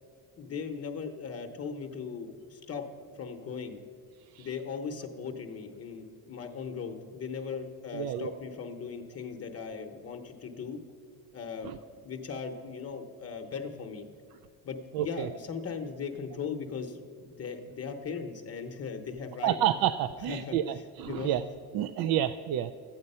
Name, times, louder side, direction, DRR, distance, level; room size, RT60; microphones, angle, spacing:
voice 1, 0.4-3.8 4.4-10.8 11.3-11.7 12.0-14.0 14.6-19.6 20.3-21.5, left 5 dB, 40° left, 5 dB, 0.9 m, -38 dB
voice 2, 7.9-8.3 11.6-11.7 14.9-15.3 19.4-21.4 21.7-22.7, right 11 dB, 70° right, 12 dB, 0.5 m, -29 dB
12.5 x 8.7 x 5.5 m, 2.3 s
cardioid pair, 120°, 38 cm